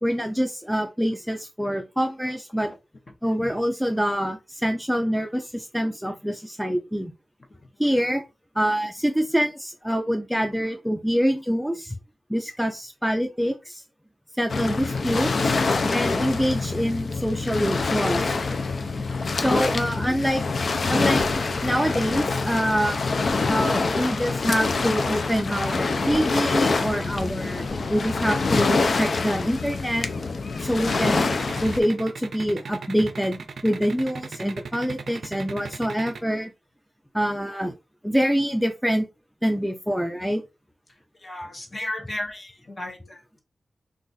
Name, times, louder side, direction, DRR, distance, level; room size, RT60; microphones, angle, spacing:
voice 1, 0.0-2.7 3.2-7.1 7.8-8.2 8.6-12.0 12.3-13.8 14.4-15.5 15.9-18.2 19.4-20.4 20.9-21.2 21.6-23.0 23.5-30.1 30.6-31.3 31.6-36.5 37.1-37.7 38.0-39.1 39.4-40.4, equal, ahead, 4 dB, 0.4 m, -25 dB
Waves surf, 14.5-31.8, left 3 dB, 60° left, 0.4 m, -25 dB
Scratching (performance technique), 21.1-21.4 21.8-24.3 24.6-28.8, left 2 dB, 85° left, 0.7 m, -36 dB
sound 1, 30.9-36.2, right 5 dB, 80° right, 0.4 m, -36 dB
voice 2, 41.2-43.2, left 1 dB, 35° left, 2 dB, 0.8 m, -34 dB
2.4 x 2.4 x 3.9 m, 0.26 s
wide cardioid pair, 100°, 0 cm